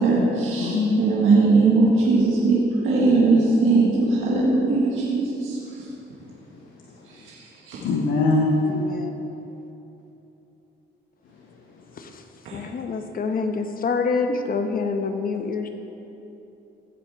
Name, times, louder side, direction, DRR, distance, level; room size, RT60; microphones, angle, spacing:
voice 1, 0.0-5.6 7.1-7.8 12.4-12.6, right 3 dB, 90° right, -5 dB, 1.7 m, -20 dB
voice 2, 0.6-1.2 6.6-7.1 7.8-8.6, left 3 dB, 75° left, -1 dB, 1.1 m, -23 dB
voice 3, 8.6-9.2 11.9-12.2 12.5-15.7, left 4 dB, 45° left, 6 dB, 1.0 m, -27 dB
15.0 x 8.0 x 3.6 m, 3.0 s
cardioid pair, 90°, 20 cm